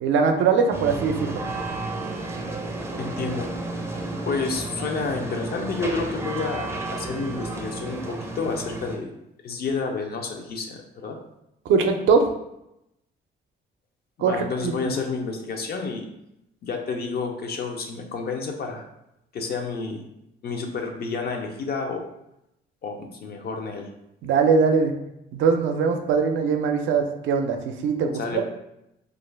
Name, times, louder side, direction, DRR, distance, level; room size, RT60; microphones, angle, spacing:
voice 1, 0.0-1.4 11.7-12.2 14.2-14.9 24.2-24.9 25.3-28.4, right 5 dB, 75° right, 5 dB, 0.4 m, -21 dB
sound 1, 0.7-9.0, right 2 dB, 15° right, 0.4 m, -32 dB
voice 2, 3.0-3.5 4.3-9.1 9.4-11.2 14.2-16.1 16.6-18.8 19.3-20.0 20.4-22.0 22.8-23.9 28.2-28.4, left 4 dB, 50° left, 3 dB, 0.5 m, -30 dB
2.4 x 2.2 x 3.2 m, 0.85 s
cardioid pair, 90°, 20 cm